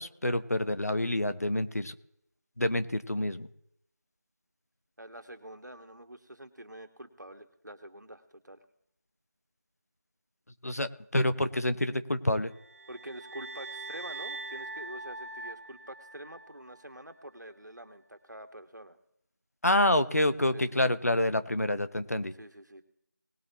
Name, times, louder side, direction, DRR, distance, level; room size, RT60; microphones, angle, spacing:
voice 1, 0.0-1.9 2.6-3.5 10.6-12.5 19.6-22.3, left 1 dB, 60° left, 10 dB, 1.0 m, -27 dB
voice 2, 5.0-8.6 12.9-19.0 20.5-20.8 22.4-22.8, right 1 dB, 90° right, 7 dB, 1.8 m, -46 dB
sound 1, 12.5-16.8, right 2 dB, 55° right, 1.8 m, -42 dB
20.0 x 8.5 x 3.0 m, 0.75 s
figure-of-eight pair, 175°, 9 cm